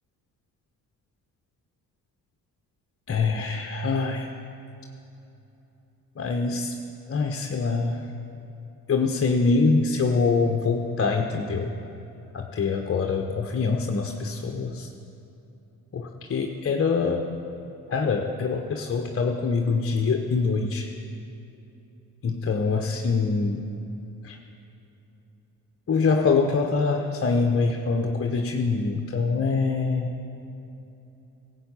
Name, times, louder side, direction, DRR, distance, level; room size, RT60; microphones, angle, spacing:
voice 1, 3.1-4.3 6.2-6.7 7.1-8.1 8.9-11.7 12.3-14.9 15.9-17.2 17.9-20.9 22.2-23.6 24.2-24.4 25.9-30.2, left 4 dB, 30° left, 3 dB, 1.1 m, -24 dB
17.0 x 8.3 x 5.6 m, 2.9 s
hypercardioid pair, 45°, 43 cm